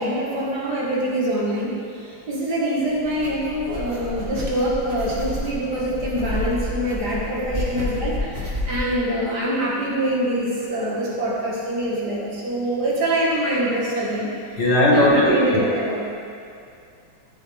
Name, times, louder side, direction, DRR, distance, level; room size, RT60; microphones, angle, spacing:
voice 1, 0.0-14.3 14.9-16.0, right 1 dB, 55° right, -5 dB, 2.2 m, -24 dB
sound 1, 2.9-9.0, left 1 dB, 30° right, 1.7 m, -30 dB
voice 2, 14.6-15.6, left 1 dB, 60° left, -6 dB, 2.4 m, -17 dB
14.0 x 7.0 x 3.4 m, 2.5 s
omnidirectional pair, 2.1 m